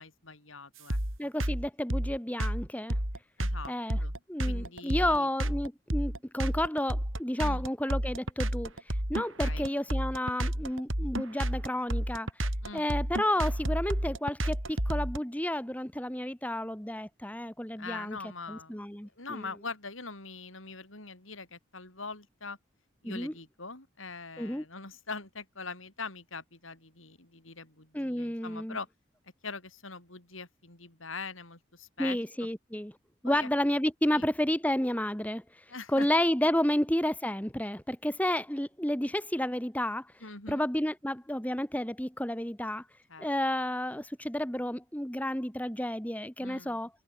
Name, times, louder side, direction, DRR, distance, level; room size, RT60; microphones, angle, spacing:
voice 1, 0.0-1.3 3.4-3.7 4.0-4.1 4.4-5.3 7.4-7.7 9.1-9.7 12.6-12.9 17.8-18.8 19.2-22.6 23.0-28.9 29.4-32.2 33.2-33.5 34.1-34.3 35.7-36.1 40.2-40.7 43.1-43.3 46.4-46.8, left 4 dB, 85° left, 7.6 m, -43 dB
sound 1, 0.9-15.2, right 1 dB, 85° right, 6.0 m, -30 dB
voice 2, 1.2-3.0 3.7-4.0 4.3-12.3 12.7-18.2 18.5-19.4 23.0-23.3 24.4-24.6 27.9-28.8 32.0-32.9 33.2-35.6 35.9-40.1 40.5-42.8 43.2-46.9, left 1 dB, 5° left, 1.6 m, -31 dB
head